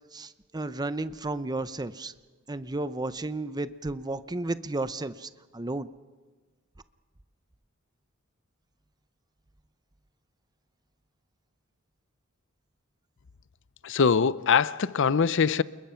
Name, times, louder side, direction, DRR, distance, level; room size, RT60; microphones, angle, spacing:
voice 1, 0.1-2.1 2.5-5.9, right 2 dB, 20° right, 0.7 m, -33 dB
voice 2, 13.8-15.6, left 6 dB, 60° left, 0.6 m, -23 dB
29.0 x 21.0 x 5.8 m
head